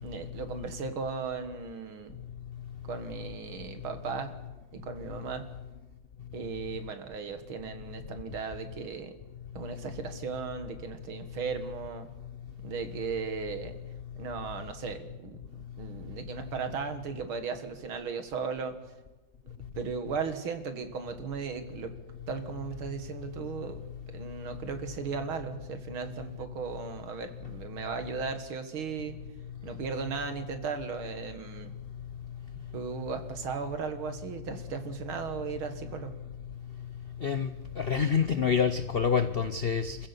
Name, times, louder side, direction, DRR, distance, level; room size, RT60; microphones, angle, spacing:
voice 1, 0.0-2.2 2.9-4.4 4.7-5.5 6.3-9.2 9.5-12.1 12.6-13.7 14.2-15.4 15.8-18.8 19.8-21.9 22.3-23.8 24.1-29.2 29.6-31.7 32.7-36.1, right 5 dB, 85° right, 8 dB, 2.5 m, -36 dB
voice 2, 37.8-40.0, left 6 dB, 80° left, 10 dB, 0.5 m, -26 dB
27.0 x 15.0 x 6.8 m, 1.2 s
omnidirectional pair, 2.2 m